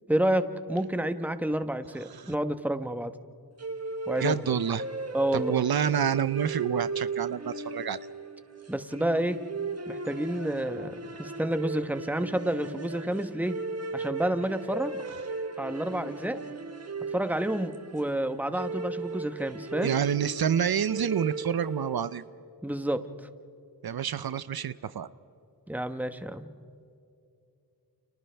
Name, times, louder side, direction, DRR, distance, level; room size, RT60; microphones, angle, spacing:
voice 1, 0.1-3.1 4.1-4.6 5.1-5.5 8.7-9.4 9.9-13.5 13.9-14.9 15.6-16.4 17.1-20.0 22.6-23.0 25.7-26.5, right 1 dB, 5° right, 9 dB, 1.1 m, -29 dB
sound 1, 3.6-22.1, right 4 dB, 40° right, 1.4 m, -36 dB
voice 2, 4.2-4.9 5.3-8.0 19.8-22.2 23.8-25.1, right 8 dB, 75° right, 15 dB, 0.6 m, -28 dB
30.0 x 29.5 x 3.4 m, 2.6 s
wide cardioid pair, 80°, 37 cm